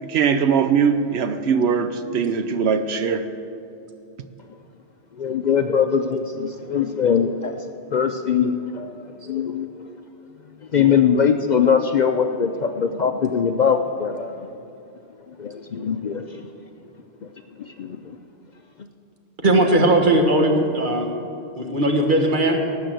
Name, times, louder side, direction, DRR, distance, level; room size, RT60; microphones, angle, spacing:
voice 1, 0.0-3.3, right 6 dB, 70° right, 10 dB, 0.9 m, -21 dB
voice 2, 5.1-9.9 10.6-14.5 15.3-16.4 17.2-17.3 17.6-18.1, left 7 dB, 55° left, 6 dB, 0.5 m, -22 dB
voice 3, 19.4-21.1 21.6-22.6, right 1 dB, 50° right, 3 dB, 1.4 m, -18 dB
18.5 x 6.1 x 7.7 m, 2.7 s
omnidirectional pair, 1.1 m